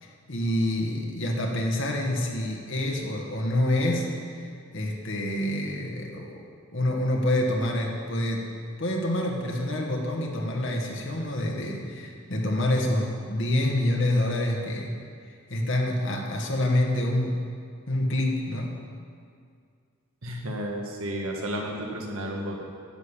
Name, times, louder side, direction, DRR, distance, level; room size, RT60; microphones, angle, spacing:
voice 1, 0.0-4.5 4.7-6.4 6.7-8.5 8.8-14.9 15.2-17.5 17.9-18.7, left 1 dB, 55° left, 0 dB, 1.3 m, -27 dB
voice 2, 20.2-22.6, equal, 70° right, 0 dB, 1.7 m, -32 dB
10.5 x 6.4 x 8.3 m, 2.2 s
head